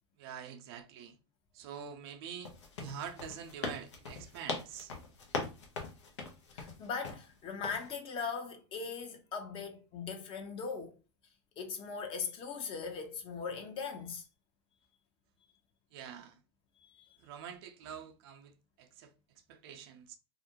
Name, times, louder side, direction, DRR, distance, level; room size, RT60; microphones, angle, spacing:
voice 1, 0.2-1.2 1.5-2.5 2.8-4.9 15.9-16.4 17.2-19.1 19.5-20.2, right 8 dB, 60° right, 0.5 m, -46 dB
sound 1, 2.4-7.3 7.6-7.9, left 3 dB, 80° left, 0.7 m, -40 dB
voice 2, 6.5-10.9 11.6-14.2 16.8-17.2, left 5 dB, 35° left, 0.7 m, -40 dB
2.4 x 2.1 x 2.7 m
hypercardioid pair, 105°, 15 cm